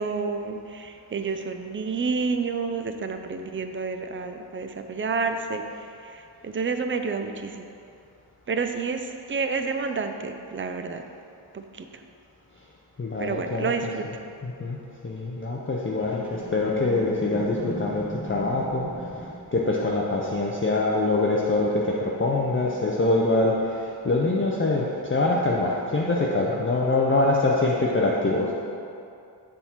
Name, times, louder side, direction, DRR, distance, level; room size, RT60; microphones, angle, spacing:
voice 1, 0.0-7.6 8.5-11.0 11.5-12.0 13.2-14.1, right 4 dB, 30° right, 7 dB, 0.4 m, -29 dB
voice 2, 13.0-13.6 14.4-14.8 15.0-18.9 19.1-19.2 19.5-28.5, left 2 dB, 25° left, -3 dB, 0.6 m, -24 dB
sound 1, 16.0-23.4 24.0-24.1, equal, 5° right, 1.1 m, -41 dB
6.9 x 3.7 x 5.7 m, 2.6 s
wide cardioid pair, 80°, 46 cm